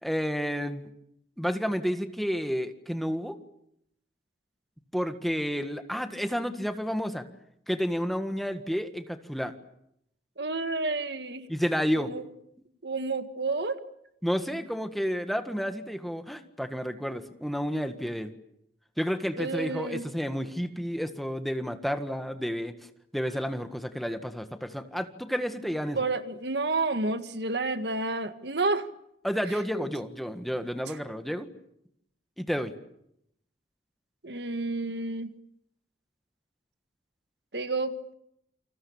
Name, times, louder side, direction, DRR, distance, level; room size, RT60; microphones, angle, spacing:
voice 1, 0.0-0.9 1.4-3.4 4.9-7.2 7.7-9.5 11.5-12.1 14.2-18.3 19.0-22.7 23.1-26.0 29.2-31.5 32.4-32.7, equal, ahead, 7 dB, 1.7 m, -30 dB
voice 2, 10.4-11.5 11.9-12.2 12.8-13.8 19.4-20.0 25.9-28.9 29.8-29.9 30.9-31.0 34.2-35.3 37.5-38.1, right 3 dB, 70° right, 9 dB, 1.7 m, -30 dB
29.0 x 26.5 x 7.3 m, 0.76 s
head